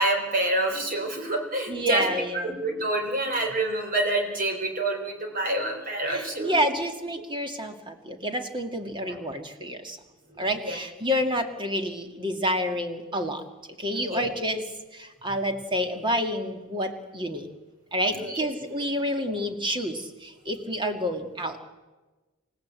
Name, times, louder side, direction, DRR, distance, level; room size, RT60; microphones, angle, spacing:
voice 1, 0.0-2.1 2.3-6.6 9.0-9.1 10.4-10.8 14.0-14.3 18.1-18.5, right 1 dB, 40° right, 3 dB, 4.0 m, -27 dB
voice 2, 1.7-2.6 6.0-10.0 10.4-13.4 13.8-14.6 14.9-17.5 17.9-21.6, equal, 25° right, 6 dB, 2.0 m, -29 dB
28.0 x 16.0 x 8.3 m, 1.2 s
head